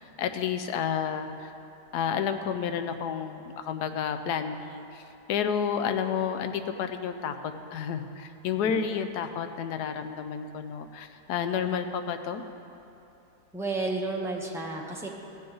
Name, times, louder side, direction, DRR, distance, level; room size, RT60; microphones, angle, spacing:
voice 1, 0.0-1.5 1.9-7.3 7.7-12.4, left 7 dB, 75° left, 8 dB, 1.1 m, -30 dB
voice 2, 8.6-9.0 13.5-15.1, right 2 dB, 5° right, -2 dB, 0.3 m, -32 dB
15.5 x 7.7 x 3.9 m, 2.8 s
omnidirectional pair, 1.8 m